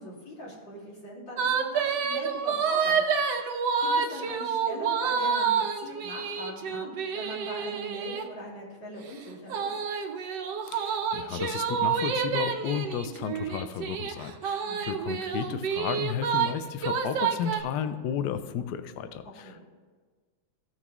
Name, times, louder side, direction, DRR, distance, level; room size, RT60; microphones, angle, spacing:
voice 1, 0.0-3.0 3.8-9.7 14.6-14.9 19.4-19.6, equal, 60° left, -6 dB, 3.2 m, -41 dB
sound 1, 1.4-8.2 9.5-16.5 16.8-17.6, right 6 dB, 65° right, 1.1 m, -28 dB
voice 2, 10.7-19.7, left 8 dB, 85° left, 11 dB, 0.9 m, -33 dB
15.0 x 6.0 x 3.0 m, 1.4 s
omnidirectional pair, 2.4 m